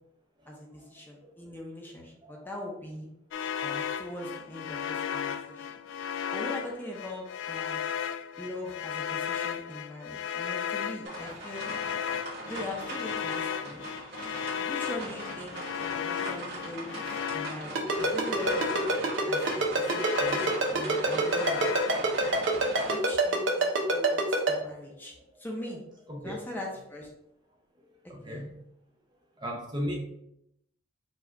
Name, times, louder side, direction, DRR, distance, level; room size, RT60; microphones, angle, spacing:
voice 1, 0.5-3.1 3.6-5.7 6.3-7.9 8.4-11.7 12.5-13.8 14.6-16.9 17.3-18.7 19.3-22.2 22.9-25.1 25.4-25.8 26.2-27.1 28.3-28.5, left 1 dB, 10° left, -1 dB, 0.7 m, -41 dB
sound 1, 3.3-19.1 19.4-22.5, left 8 dB, 85° left, 0.3 m, -35 dB
sound 2, 11.0-23.0, right 2 dB, 60° right, 1.6 m, -40 dB
Ringtone, 17.8-24.5, right 3 dB, 85° right, 0.9 m, -25 dB
voice 2, 26.1-26.4 28.1-28.6 29.4-30.0, equal, 25° right, 0 dB, 0.7 m, -38 dB
4.7 x 2.5 x 4.4 m, 0.77 s
head